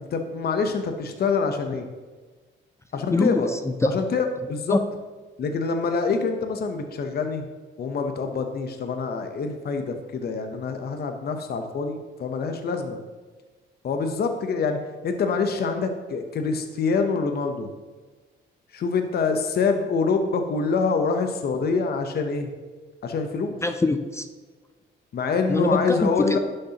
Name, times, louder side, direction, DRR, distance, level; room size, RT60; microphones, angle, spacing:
voice 1, 0.0-1.9 2.9-3.5 3.9-4.8 5.4-7.5 7.8-13.0 13.8-14.8 15.0-17.7 18.7-22.5 23.0-23.6 25.1-26.4, left 4 dB, 50° left, 6 dB, 0.8 m, -25 dB
voice 2, 3.1-4.0 4.7-4.8 23.6-24.3 25.5-26.4, left 2 dB, 15° left, 8 dB, 0.4 m, -23 dB
11.0 x 6.6 x 2.9 m, 1.4 s
cardioid pair, 90°, 20 cm